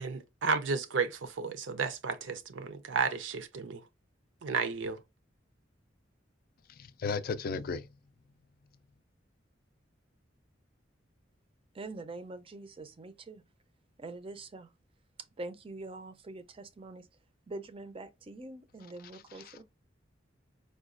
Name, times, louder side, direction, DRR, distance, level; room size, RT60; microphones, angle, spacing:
voice 1, 0.0-3.8 4.4-5.0, right 5 dB, 75° right, 0.5 m, -32 dB
voice 2, 6.7-7.9 19.4-19.6, left 5 dB, 50° left, 0.3 m, -35 dB
voice 3, 11.7-13.4 14.0-14.7 15.4-17.1 17.5-19.6, right 2 dB, 30° right, 0.4 m, -44 dB
4.8 x 2.2 x 2.4 m
head